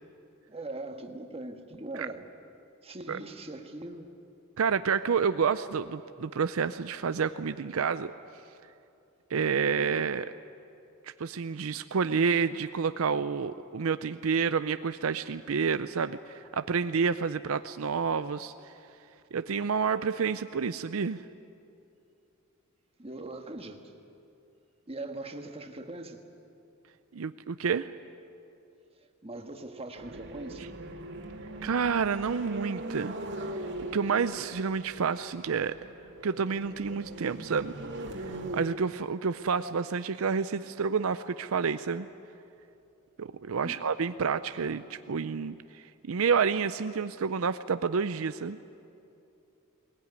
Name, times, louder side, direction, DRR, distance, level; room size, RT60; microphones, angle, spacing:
voice 1, 0.5-2.2 2.8-4.1 23.0-23.9 24.9-26.2 29.2-30.7 43.6-43.8, right 2 dB, 30° right, 5 dB, 1.5 m, -41 dB
voice 2, 4.6-8.1 9.3-10.3 11.0-18.7 19.3-21.2 27.1-27.9 31.6-33.1 33.5-33.6 33.9-35.8 36.2-37.7 38.5-42.1 43.2-48.6, right 5 dB, 75° right, 12 dB, 0.5 m, -29 dB
sound 1, 30.0-38.7, right 1 dB, 60° right, 2.3 m, -40 dB
21.0 x 19.5 x 9.5 m, 2.7 s
head